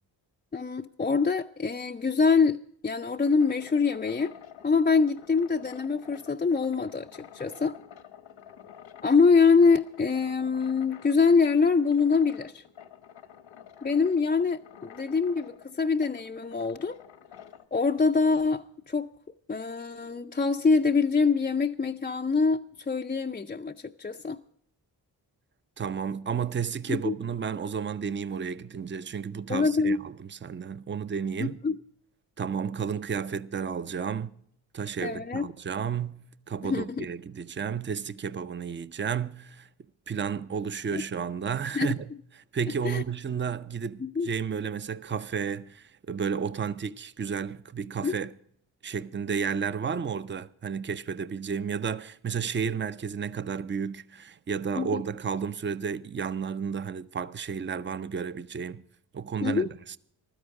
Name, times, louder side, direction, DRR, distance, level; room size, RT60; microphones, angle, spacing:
voice 1, 0.5-4.3 4.6-7.8 9.0-12.6 13.8-17.0 17.7-19.1 19.5-24.4 26.9-27.1 29.5-30.0 31.4-31.8 35.0-35.4 36.6-37.1 40.9-41.0 41.7-41.9 42.8-43.0 44.0-44.3 48.0-48.1 54.7-55.0 59.4-59.7, left 4 dB, 20° left, 0.5 m, -25 dB
sound 1, 2.8-17.7, left 9 dB, 75° left, 1.1 m, -50 dB
voice 2, 25.8-31.6 32.4-34.4 34.7-39.7 40.1-42.1 42.5-48.3 48.8-58.8 59.1-60.0, right 6 dB, 25° right, 0.6 m, -32 dB
15.0 x 12.5 x 4.8 m
cardioid pair, 65°, 45 cm